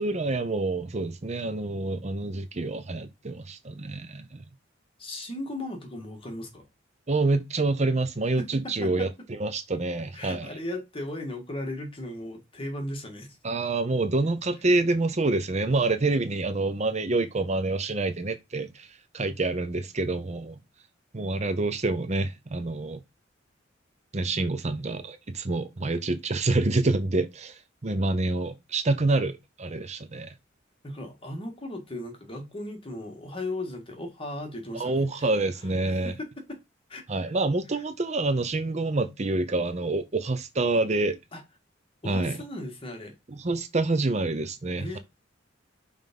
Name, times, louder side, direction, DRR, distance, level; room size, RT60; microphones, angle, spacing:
voice 1, 0.0-4.4 7.1-10.5 13.4-20.6 21.1-23.0 24.1-30.3 34.7-36.1 37.1-41.2 42.0-42.4 43.3-45.0, right 2 dB, 35° right, 0.7 m, -27 dB
voice 2, 5.0-6.7 8.4-9.1 10.1-13.4 30.8-35.3 35.7-36.6 36.9-37.0 41.3-41.4 42.0-43.2 44.8-45.0, left 1 dB, 30° left, 1.9 m, -37 dB
5.6 x 3.5 x 5.3 m
head